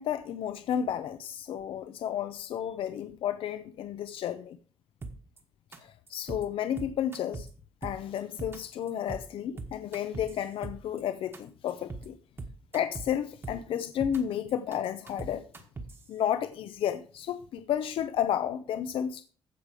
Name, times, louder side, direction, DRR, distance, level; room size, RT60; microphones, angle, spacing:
voice 1, 0.0-4.6 6.1-7.5 7.8-12.2 12.7-15.4 16.1-19.2, left 9 dB, 65° left, 0.6 m, -32 dB
sound 1, 5.0-5.4 5.7-5.8 6.1-6.4 6.8-7.5 7.8-8.6 8.9-9.2 9.6-11.0 11.3-11.4 11.7-12.1 12.4-13.1 13.4-14.2 14.5-16.0, right 3 dB, 25° right, 1.3 m, -40 dB
14.5 x 5.2 x 4.8 m
cardioid pair, 175°, 10 cm